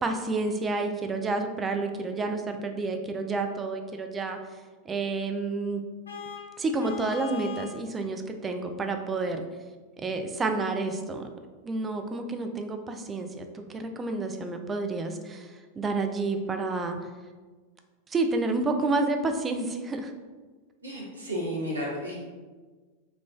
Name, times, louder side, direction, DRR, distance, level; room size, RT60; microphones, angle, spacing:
voice 1, 0.0-4.4 4.9-5.8 6.6-9.4 10.0-11.3 11.6-17.0 18.1-20.1, right 3 dB, 20° right, 5 dB, 0.3 m, -29 dB
Vehicle horn car horn honking, 6.1-7.8, left 7 dB, 70° left, 0.4 m, -40 dB
voice 2, 20.8-22.2, equal, 80° right, -5 dB, 0.9 m, -32 dB
3.5 x 2.4 x 2.4 m, 1.4 s
figure-of-eight pair, 90°, 0 cm